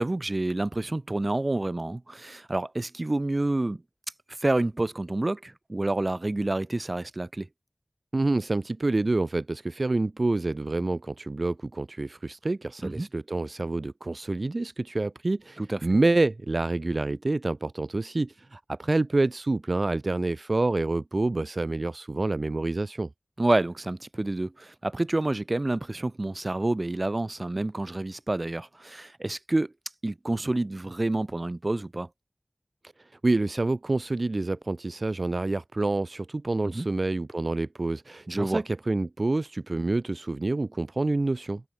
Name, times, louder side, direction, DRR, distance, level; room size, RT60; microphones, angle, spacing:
voice 1, 0.0-3.8 4.4-7.5 12.8-13.1 15.6-15.8 23.4-29.7 30.0-32.1 36.6-36.9 38.3-38.6, right 2 dB, 45° right, 1.5 m, -28 dB
voice 2, 8.1-23.1 33.0-41.6, right 2 dB, 60° right, 1.1 m, -27 dB
wide cardioid pair, 55°, 0 cm